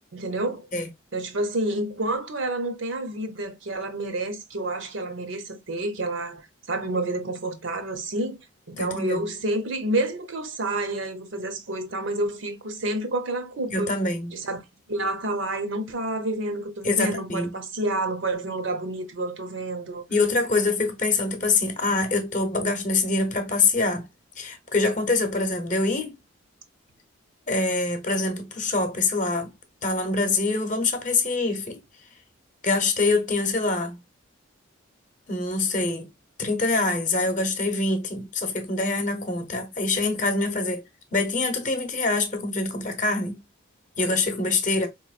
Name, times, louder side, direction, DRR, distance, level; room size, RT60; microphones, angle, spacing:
voice 1, 0.1-0.7 1.1-6.4 6.7-8.4 8.7-13.9 14.3-14.6 14.9-20.0, right 2 dB, 65° right, 0.7 m, -29 dB
voice 2, 8.8-9.3 13.7-14.3 16.8-17.5 20.1-24.1 24.4-26.2 27.5-29.5 29.8-31.8 32.6-34.0 35.3-36.1 36.4-40.8 41.1-43.4 44.0-44.9, left 3 dB, 40° left, 0.8 m, -25 dB
4.4 x 3.0 x 2.4 m
head